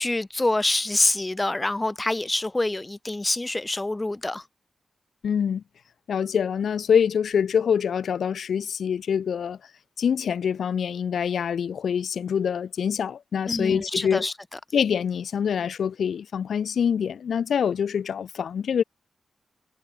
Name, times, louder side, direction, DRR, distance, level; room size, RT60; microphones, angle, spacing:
voice 1, 0.0-4.4 13.5-14.3, left 2 dB, 25° left, 2.5 m, -26 dB
voice 2, 5.2-5.6 6.1-9.6 10.0-14.3 14.7-18.8, left 7 dB, 80° left, 3.2 m, -25 dB
cardioid pair, 45°, 0 cm